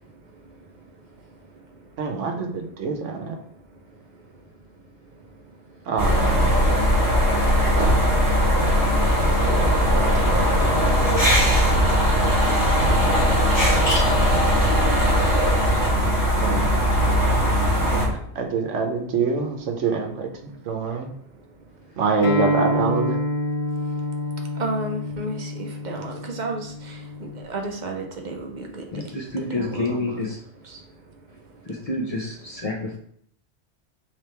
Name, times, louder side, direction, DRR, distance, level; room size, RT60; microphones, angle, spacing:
voice 1, 2.0-3.4 5.9-6.5 9.2-10.9 12.7-13.4 13.7-13.8 14.2-14.4 16.4-16.6 17.9-21.1 22.0-23.2, right 4 dB, 85° right, 3 dB, 1.1 m, -26 dB
sound 1, 6.0-18.1, equal, 15° right, 1.0 m, -19 dB
sound 2, 13.5-17.3, left 2 dB, 85° left, 1.6 m, -37 dB
Acoustic guitar, 22.2-27.4, left 1 dB, 65° left, 1.0 m, -27 dB
voice 2, 24.6-28.9 29.4-30.3 30.6-30.8, right 2 dB, 45° right, 2 dB, 0.7 m, -32 dB
voice 3, 28.9-30.4 31.7-33.0, left 2 dB, 40° left, -2 dB, 0.6 m, -28 dB
3.4 x 3.4 x 4.4 m, 0.66 s
omnidirectional pair, 1.2 m